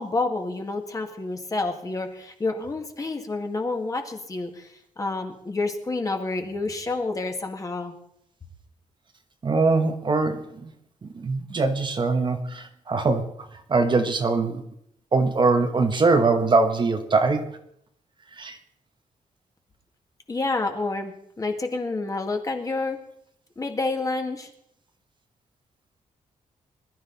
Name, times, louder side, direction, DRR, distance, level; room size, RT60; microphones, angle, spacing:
voice 1, 0.0-8.0 20.3-23.0 23.6-24.5, left 3 dB, 25° left, 4 dB, 1.9 m, -29 dB
voice 2, 9.4-10.7 11.0-14.6 15.1-17.6 18.4-18.6, right 3 dB, 35° right, 6 dB, 1.2 m, -22 dB
21.0 x 12.5 x 4.1 m, 0.72 s
wide cardioid pair, 145°, 14 cm